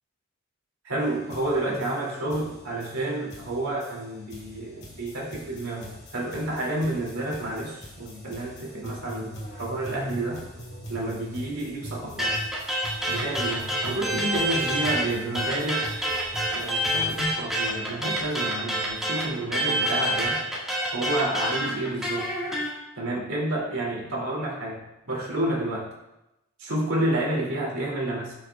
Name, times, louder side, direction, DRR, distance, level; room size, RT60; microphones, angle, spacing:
voice 1, 0.8-10.4 10.9-12.4 13.1-15.9 16.5-20.4 20.9-22.3 23.0-24.8 25.1-25.9 26.6-28.4, right 1 dB, 85° right, -3 dB, 2.5 m, -30 dB
sound 1, 1.0-1.1 1.3-17.2, right 1 dB, 30° left, 1.9 m, -41 dB
sound 2, 12.2-15.1 15.3-22.7, right 1 dB, ahead, 1.6 m, -27 dB
12.5 x 6.3 x 2.3 m, 0.93 s
head